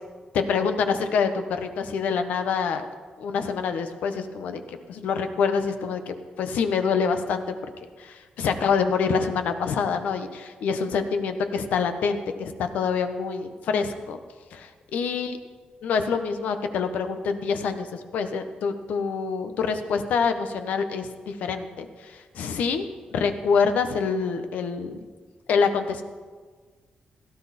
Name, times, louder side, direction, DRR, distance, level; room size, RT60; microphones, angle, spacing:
voice 1, 0.3-2.9 3.2-7.6 8.0-14.2 14.5-15.4 15.8-22.8 23.1-25.0 25.5-26.0, left 5 dB, 85° left, 8 dB, 1.2 m, -26 dB
17.5 x 13.5 x 4.3 m, 1.5 s
cardioid pair, 115°, 3 cm